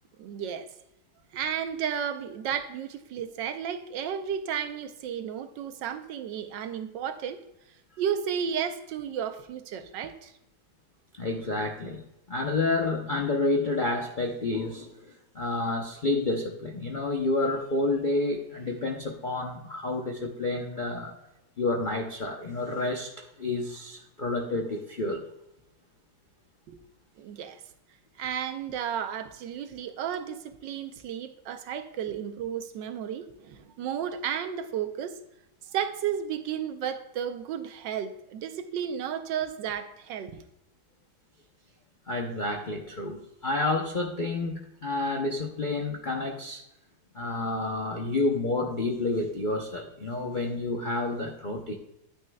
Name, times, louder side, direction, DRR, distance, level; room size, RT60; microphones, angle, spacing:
voice 1, 0.2-0.7 1.3-7.4 8.0-10.3 26.7-26.8 27.2-27.6 28.2-35.2 35.7-40.4, right 8 dB, 80° right, 9 dB, 1.4 m, -33 dB
voice 2, 11.2-21.1 21.6-25.3 42.1-46.6 47.1-51.7, left 2 dB, 55° left, 1 dB, 0.5 m, -29 dB
10.0 x 9.3 x 2.2 m, 0.85 s
omnidirectional pair, 2.0 m